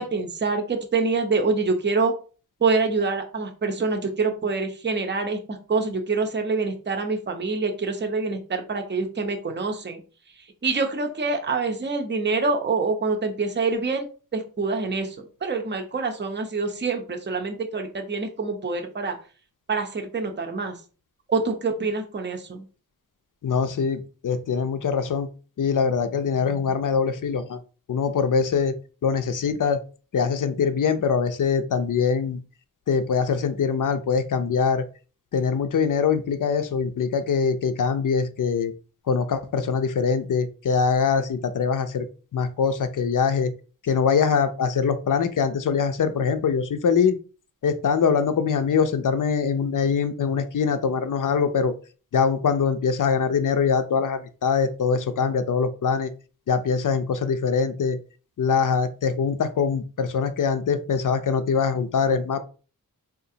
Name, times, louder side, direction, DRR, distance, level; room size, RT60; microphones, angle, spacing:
voice 1, 0.0-2.1 2.6-10.0 10.6-14.1 14.3-15.1 15.4-19.2 19.7-20.8 21.3-22.6, right 4 dB, 30° right, 4 dB, 0.6 m, -26 dB
voice 2, 23.4-25.3 25.6-27.6 27.9-28.7 29.0-29.8 30.1-32.4 32.9-34.8 35.3-38.7 39.1-42.1 42.3-43.5 43.8-47.2 47.6-51.7 52.1-56.1 56.5-58.0 58.4-62.4, left 6 dB, 60° left, 9 dB, 0.5 m, -23 dB
3.8 x 2.4 x 2.7 m, 0.36 s
wide cardioid pair, 85°, 36 cm